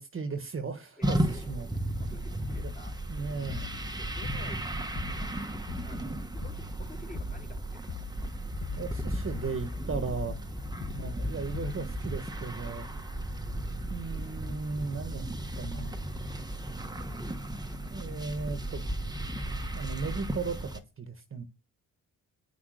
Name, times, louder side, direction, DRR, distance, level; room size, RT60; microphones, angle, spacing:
voice 1, 0.0-1.2 1.5-1.7 2.5-2.7 3.1-3.7 8.8-10.4 10.9-12.9 13.9-15.9 17.9-18.8 19.7-21.4, right 4 dB, 35° right, 1.5 m, -36 dB
voice 2, 1.0-1.4 1.7-3.3 3.9-4.7 5.4-8.4 13.1-13.3, left 2 dB, 25° left, 3.1 m, -52 dB
sound 1, 1.0-20.8, right 1 dB, 10° right, 1.3 m, -35 dB
sound 2, 3.5-3.9 4.2-4.6 4.9-5.3 5.7-6.1 6.4-6.8 7.1-7.5 7.9-8.3 8.6-9.0 9.3-9.7 10.1-10.4 10.8-11.2 11.5-11.9, left 14 dB, 50° left, 0.5 m, -42 dB
9.5 x 6.0 x 6.5 m
cardioid pair, 80°, 34 cm